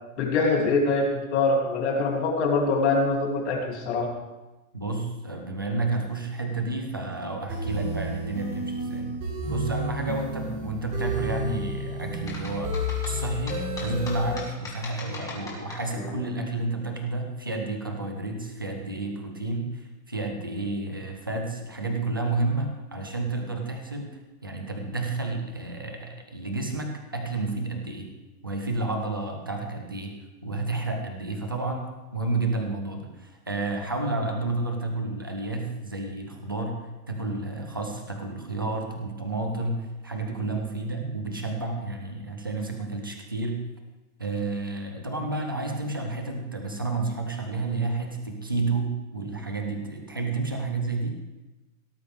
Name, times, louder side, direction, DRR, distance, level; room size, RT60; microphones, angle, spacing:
voice 1, 0.2-4.1, left 3 dB, 50° left, 0 dB, 2.9 m, -24 dB
voice 2, 4.7-9.1 9.4-12.7 13.0-24.1 24.4-28.1 28.4-30.1 30.4-36.8 37.1-43.6 44.2-51.2, right 2 dB, 20° right, 3 dB, 0.3 m, -30 dB
sound 1, 7.5-14.3, equal, 40° right, 4.7 m, -31 dB
sound 2, 12.3-16.1, left 3 dB, 10° left, 1.8 m, -39 dB
17.0 x 13.0 x 3.4 m, 1.1 s
supercardioid pair, 180°, 43 cm